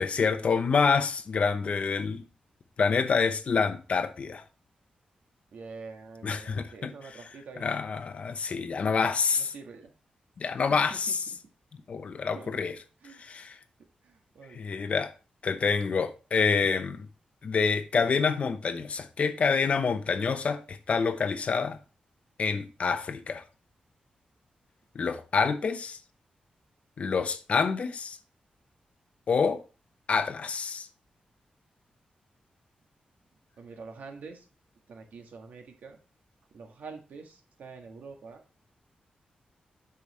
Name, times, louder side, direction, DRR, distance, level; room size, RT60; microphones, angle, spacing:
voice 1, 0.0-2.2 2.8-4.4 6.2-6.9 7.6-9.5 10.4-11.2 11.9-12.7 13.2-13.6 14.5-15.1 15.4-17.1 17.4-21.8 22.4-23.4 24.9-26.0 27.0-28.2 29.3-29.6 30.1-30.9, left 5 dB, 50° left, 0.7 m, -27 dB
voice 2, 5.5-7.8 9.3-9.9 10.7-11.4 12.3-12.5 13.0-13.2 14.0-14.6 33.6-34.5 34.9-36.0 36.5-38.4, right 4 dB, 85° right, 1.6 m, -46 dB
8.5 x 5.8 x 3.2 m
wide cardioid pair, 155°, 3 cm